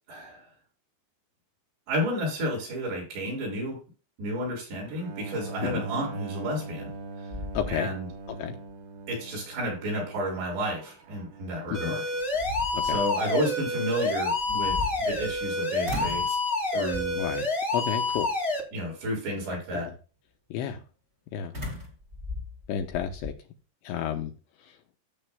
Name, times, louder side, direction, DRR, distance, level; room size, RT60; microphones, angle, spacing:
voice 1, 0.1-0.4 1.9-3.8 4.2-6.9 7.7-8.1 9.1-12.0 12.8-16.4 16.7-17.2 18.7-19.9, equal, 55° right, -2 dB, 8.0 m, -31 dB
Bowed string instrument, 4.9-11.9, right 3 dB, 75° right, 4.7 m, -41 dB
sound 1, 6.7-7.0 7.3-8.3 8.7-8.8 11.5-11.6 12.1-13.0 14.4-15.5 15.8-16.4 16.9-17.3 18.1-18.5 21.5-23.4, left 2 dB, 20° right, 1.7 m, -37 dB
voice 2, 7.5-7.9 8.3-8.6 11.7-12.0 12.7-13.0 17.2-17.5 17.7-18.3 19.5-19.9 20.5-20.8 21.3-21.5 22.7-23.3 23.8-24.3 24.6-24.8, left 9 dB, 80° left, 3 dB, 2.8 m, -31 dB
sound 2, 11.7-18.6, left 3 dB, 45° left, 0.8 m, -28 dB
15.5 x 7.8 x 2.2 m, 0.36 s
omnidirectional pair, 5.8 m